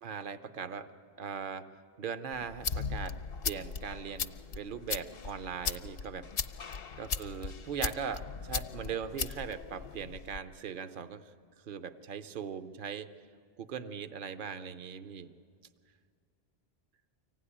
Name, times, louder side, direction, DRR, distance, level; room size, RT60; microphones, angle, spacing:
voice 1, 0.0-0.9 1.2-1.7 2.0-3.2 3.4-6.3 7.0-11.2 11.7-13.1 13.6-15.3, right 7 dB, 55° right, 9 dB, 0.9 m, -39 dB
sound 1, 2.3-10.4, left 6 dB, 65° left, 0.9 m, -38 dB
24.5 x 17.0 x 9.9 m, 2.2 s
omnidirectional pair, 1.1 m